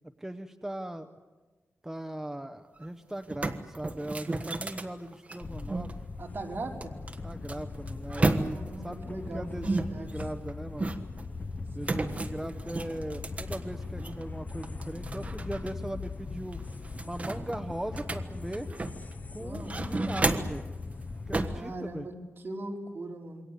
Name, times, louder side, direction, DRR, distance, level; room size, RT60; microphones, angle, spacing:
voice 1, 0.2-1.1 1.8-5.9 7.2-10.9 11.7-16.6 17.0-18.7 19.3-20.6 21.3-22.1, right 1 dB, 10° right, 7 dB, 0.8 m, -38 dB
sound 1, 2.8-2.9 3.2-5.9 6.8-8.8 9.6-11.2 11.8-14.2 14.6-15.7 16.0-16.1 16.5-19.1 19.5-20.7 21.3-21.6, right 2 dB, 30° right, 1.4 m, -33 dB
sound 2, 5.4-21.6, left 3 dB, 35° left, 0.9 m, -40 dB
voice 2, 6.2-7.0 8.4-10.1 11.8-12.1 19.4-19.8 21.5-23.4, right 2 dB, 50° right, 0 dB, 3.7 m, -40 dB
27.5 x 23.0 x 8.2 m, 1.3 s
wide cardioid pair, 155°, 5 cm